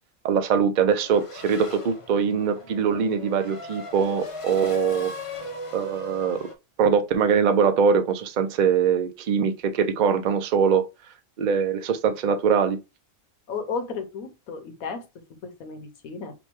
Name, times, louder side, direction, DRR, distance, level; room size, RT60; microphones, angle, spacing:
voice 1, 0.2-5.1 5.7-6.4 6.8-10.9 11.4-12.8, right 6 dB, 70° right, 0.4 m, -22 dB
Race car auto racing / Accelerating revving vroom, 0.9-6.5, left 2 dB, 45° left, 0.4 m, -38 dB
voice 2, 13.5-15.1 15.4-16.3, left 5 dB, 80° left, 1.3 m, -33 dB
5.2 x 2.2 x 3.0 m
omnidirectional pair, 1.5 m